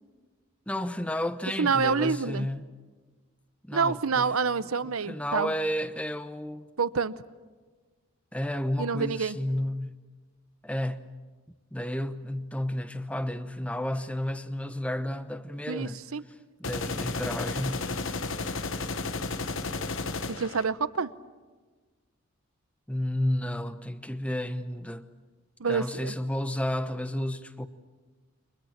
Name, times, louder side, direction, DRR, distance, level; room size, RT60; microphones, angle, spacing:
voice 1, 0.7-2.7 3.6-4.3 4.8-6.7 8.3-10.0 10.6-11.0 11.7-16.0 16.6-17.9 22.9-25.0 25.7-27.7, left 1 dB, 5° left, 0.9 m, -32 dB
voice 2, 1.6-2.5 3.7-5.5 6.8-7.2 8.8-9.4 15.7-16.2 20.3-21.1 25.6-26.1, right 5 dB, 80° right, 0.9 m, -27 dB
sound 1, 16.6-20.6, left 3 dB, 60° left, 1.2 m, -33 dB
30.0 x 24.0 x 7.4 m
head